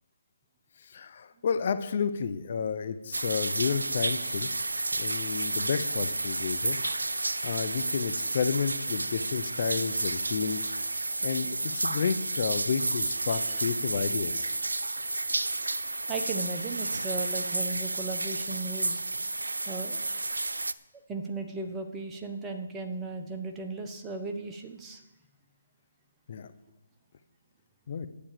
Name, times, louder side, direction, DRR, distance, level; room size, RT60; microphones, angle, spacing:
voice 1, 0.8-4.5 5.0-6.8 7.2-10.7 11.2-14.5 26.3-26.5 27.9-28.1, left 6 dB, 50° left, 10 dB, 0.8 m, -31 dB
sound 1, 3.1-20.7, right 2 dB, 85° right, 0.5 m, -31 dB
voice 2, 16.1-19.0 19.7-20.0 21.1-25.0, right 3 dB, 15° right, 3 dB, 1.0 m, -36 dB
10.0 x 8.7 x 6.8 m, 1.1 s
figure-of-eight pair, 150°, 0 cm